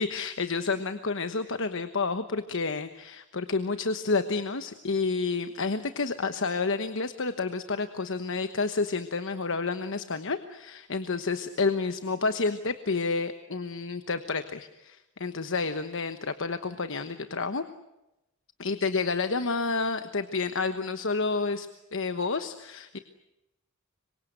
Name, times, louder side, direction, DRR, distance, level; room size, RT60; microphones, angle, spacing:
voice 1, 0.0-17.6 18.6-21.7 21.9-23.0, left 4 dB, 60° left, 9 dB, 1.1 m, -30 dB
26.0 x 24.0 x 8.0 m, 0.94 s
head